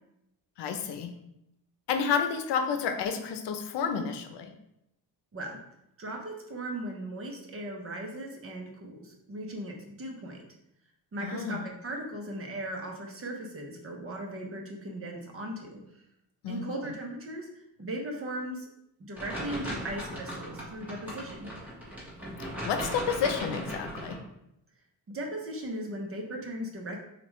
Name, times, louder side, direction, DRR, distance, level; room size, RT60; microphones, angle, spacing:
voice 1, 0.6-1.1 1.9-4.5 11.2-11.6 16.4-16.9 22.6-24.2, left 6 dB, 85° left, 6 dB, 0.7 m, -30 dB
voice 2, 6.0-10.4 11.1-15.8 16.5-18.7 19.0-21.5 25.1-27.0, right 1 dB, 35° right, 1 dB, 0.9 m, -38 dB
sound 1, 19.1-24.1, equal, 5° right, 1.4 m, -38 dB
6.7 x 2.5 x 3.1 m, 0.82 s
cardioid pair, 140°, 41 cm